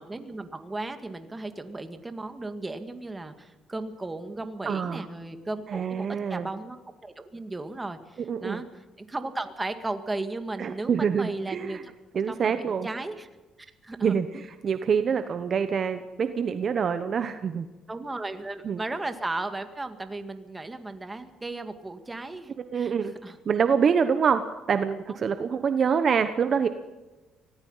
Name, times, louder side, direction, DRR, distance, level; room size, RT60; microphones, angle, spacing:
voice 1, 0.0-6.8 7.0-11.9 12.3-13.3 13.8-14.2 17.9-23.4 25.2-25.3, right 2 dB, 15° right, 8 dB, 2.1 m, -35 dB
voice 2, 4.6-5.1 5.7-6.5 8.3-8.6 10.6-11.8 12.1-12.9 14.0-17.7 18.6-18.8 22.7-23.1 23.5-26.7, right 6 dB, 45° right, 10 dB, 1.1 m, -26 dB
25.5 x 18.0 x 5.7 m, 1.2 s
cardioid pair, 105°, 0 cm